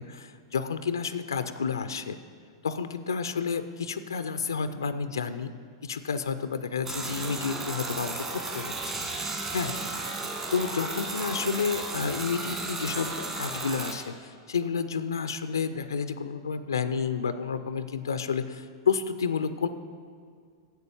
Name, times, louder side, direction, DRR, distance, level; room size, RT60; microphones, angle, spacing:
voice 1, 0.0-2.2 2.6-5.5 5.8-8.9 9.5-9.7 10.5-19.7, left 6 dB, 80° left, 12 dB, 0.4 m, -30 dB
sound 1, 6.8-13.9, right 3 dB, 25° right, 2.1 m, -34 dB
9.1 x 8.1 x 7.0 m, 2.1 s
figure-of-eight pair, 95°, 2 cm